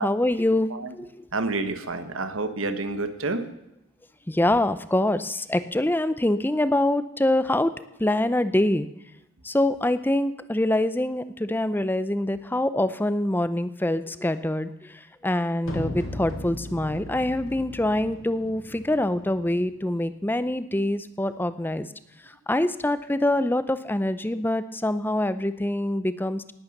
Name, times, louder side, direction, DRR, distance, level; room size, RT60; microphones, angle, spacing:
voice 1, 0.0-1.2 4.3-8.9 9.4-21.9 22.5-26.5, left 1 dB, 10° left, 13 dB, 0.5 m, -25 dB
voice 2, 1.3-3.4, right 3 dB, 75° right, 9 dB, 1.4 m, -28 dB
sound 1, 15.6-19.7, left 1 dB, 75° left, 3.1 m, -37 dB
18.5 x 8.7 x 6.6 m, 0.85 s
head